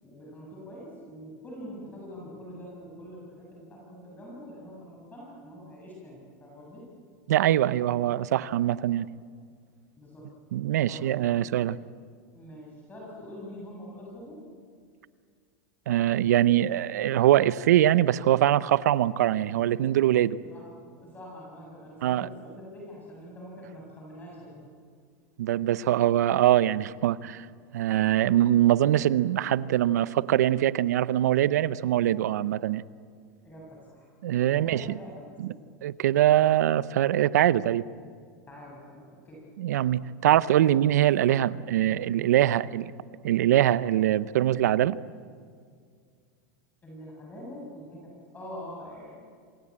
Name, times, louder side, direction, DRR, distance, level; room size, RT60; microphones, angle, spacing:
voice 1, 0.0-6.9 10.0-10.3 10.9-11.2 12.3-14.4 20.4-20.7 21.0-24.6 33.4-34.1 34.5-35.5 38.5-39.5 40.6-40.8 46.8-49.2, equal, 20° left, 7.6 m, -44 dB
voice 2, 7.3-9.1 10.5-11.8 15.9-20.4 22.0-22.3 25.4-27.5 27.7-32.8 34.2-34.8 35.4-35.5 35.8-37.8 39.6-42.9 43.2-45.0, right 12 dB, 85° right, 0.8 m, -23 dB
27.5 x 20.5 x 8.8 m
supercardioid pair, 120°, 9 cm